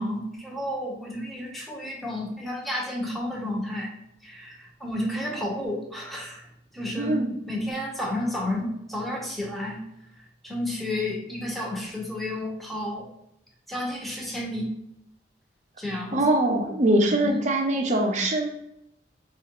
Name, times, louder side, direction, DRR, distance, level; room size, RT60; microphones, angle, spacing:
voice 1, 0.0-6.5 6.7-7.2 7.5-9.8 10.4-13.1 13.7-14.7 15.8-16.2 17.0-17.4, left 1 dB, ahead, -3 dB, 0.8 m, -31 dB
voice 2, 7.0-7.3 16.1-18.5, right 1 dB, 40° right, 2 dB, 0.6 m, -22 dB
4.2 x 2.4 x 2.9 m, 0.79 s
head